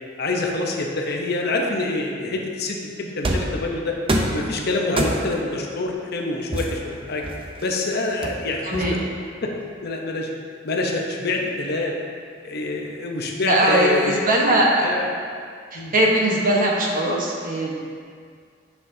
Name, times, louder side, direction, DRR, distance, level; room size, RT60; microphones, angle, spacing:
voice 1, 0.2-4.0 4.3-7.2 7.6-8.8 9.4-9.5 9.8-10.3 10.6-11.9 12.4-14.3 14.8-15.1 15.7-15.9, left 2 dB, 55° left, 0 dB, 0.8 m, -26 dB
sound 1, 3.2-3.6 4.1-4.4 5.0-5.4 6.5-7.6 8.2-9.2, right 1 dB, 30° right, 0.6 m, -25 dB
voice 2, 8.6-9.0 13.4-14.9 15.7-17.7, right 1 dB, 45° right, -3 dB, 1.2 m, -20 dB
9.6 x 5.8 x 2.7 m, 2.1 s
head